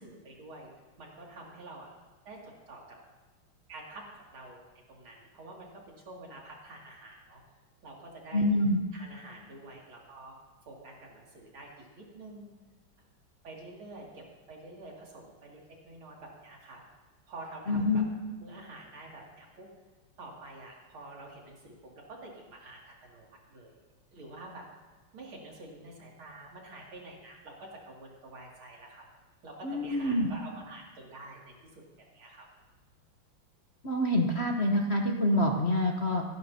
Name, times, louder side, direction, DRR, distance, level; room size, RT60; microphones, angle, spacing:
voice 1, 0.0-0.7 1.0-1.9 2.2-2.8 3.7-7.4 7.8-8.5 8.9-10.3 10.7-12.6 13.4-16.8 17.3-18.0 18.4-19.7 20.2-23.8 24.1-24.7 25.1-29.0 29.4-32.5, right 2 dB, 85° right, -2 dB, 3.5 m, -48 dB
voice 2, 8.3-8.8 17.7-18.0 29.6-30.3 33.8-36.2, left 1 dB, 40° left, 2 dB, 1.1 m, -26 dB
27.0 x 11.5 x 2.8 m, 1.2 s
omnidirectional pair, 2.2 m